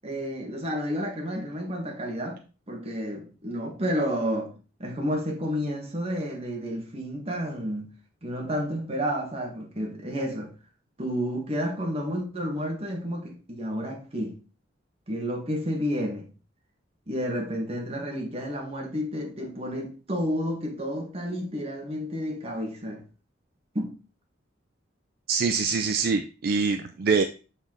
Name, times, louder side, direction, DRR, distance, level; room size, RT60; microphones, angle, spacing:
voice 1, 0.0-2.4 2.7-4.5 4.8-7.9 8.2-10.5 11.0-14.4 15.1-16.3 17.1-23.0 23.7-23.9, equal, 35° right, 1.6 m, -30 dB
voice 2, 25.3-27.2, right 5 dB, 55° right, 0.4 m, -24 dB
6.8 x 4.2 x 3.9 m
head